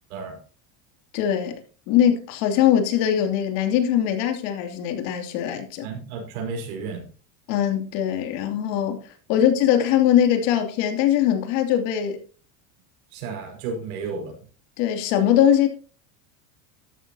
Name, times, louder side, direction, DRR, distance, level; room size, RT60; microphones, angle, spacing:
voice 1, 0.1-0.4 5.8-7.1 9.3-9.4 13.1-14.4, right 4 dB, 85° right, 5.5 m, -33 dB
voice 2, 1.1-1.5 1.9-5.9 7.5-9.0 9.3-12.2 14.8-15.7, left 10 dB, 70° left, 2.8 m, -21 dB
13.5 x 11.0 x 2.9 m
supercardioid pair, 145°, 41 cm